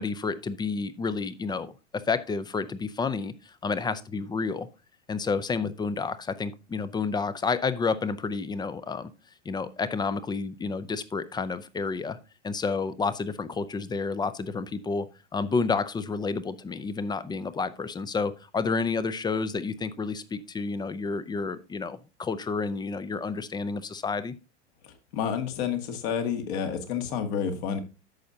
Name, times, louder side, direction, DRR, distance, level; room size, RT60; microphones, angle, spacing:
voice 1, 0.0-4.7 5.1-9.1 9.4-12.2 12.4-24.3, left 4 dB, 10° left, 14 dB, 0.6 m, -30 dB
voice 2, 24.8-27.8, left 7 dB, 55° left, 6 dB, 2.0 m, -30 dB
11.0 x 7.4 x 2.8 m, 0.30 s
figure-of-eight pair, 95°, 36 cm